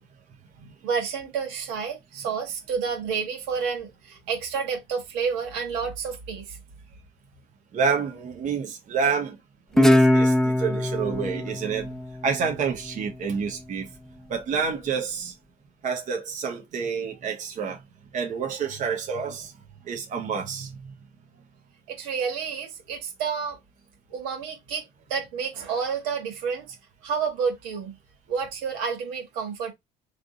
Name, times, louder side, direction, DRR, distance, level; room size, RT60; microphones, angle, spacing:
voice 1, 0.8-6.6 21.9-23.6 24.1-24.8 25.1-26.8 27.0-28.0 28.3-29.7, right 6 dB, 90° right, 1.6 m, -30 dB
voice 2, 7.7-9.4 9.7-11.9 12.2-13.9 14.3-15.3 15.8-17.8 18.1-19.5 19.9-20.8, right 6 dB, 50° right, 1.1 m, -28 dB
Guitar, 9.8-13.0, left 1 dB, 5° left, 0.5 m, -22 dB
3.4 x 2.6 x 3.9 m
supercardioid pair, 85°, 16 cm